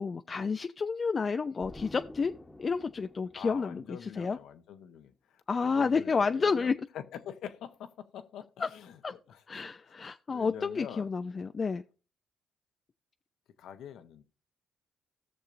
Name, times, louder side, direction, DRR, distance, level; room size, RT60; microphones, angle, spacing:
voice 1, 0.0-2.3 2.6-4.4 5.5-6.8 8.6-8.7 9.0-9.1 9.5-11.8, left 5 dB, 40° left, 0.4 m, -30 dB
Explosion, 1.6-4.3, left 1 dB, 20° left, 1.1 m, -49 dB
voice 2, 3.3-9.9 10.3-11.1 13.6-14.2, left 9 dB, 75° left, 0.8 m, -46 dB
16.5 x 6.5 x 2.6 m
supercardioid pair, 70°, 0 cm